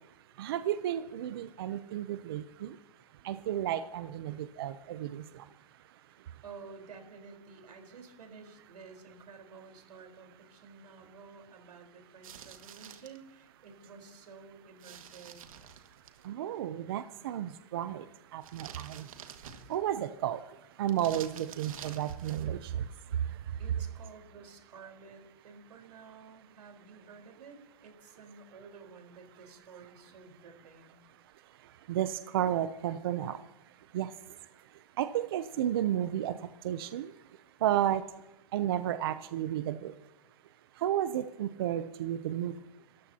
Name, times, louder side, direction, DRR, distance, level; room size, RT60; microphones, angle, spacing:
voice 1, 0.4-2.8 3.2-5.5 16.2-18.1 18.3-19.1 19.7-23.6 31.6-33.5 33.9-34.4 35.0-37.1 37.6-38.0 38.5-39.9 40.8-42.6, right 11 dB, 35° right, 11 dB, 0.5 m, -33 dB
voice 2, 6.4-15.4 23.6-31.0, right 5 dB, 85° right, 4 dB, 4.1 m, -52 dB
sound 1, 12.2-13.2 14.8-16.2 18.4-20.0 20.9-22.5, right 8 dB, 60° right, 1.8 m, -49 dB
23.5 x 14.0 x 2.8 m, 0.99 s
hypercardioid pair, 165°, 20 cm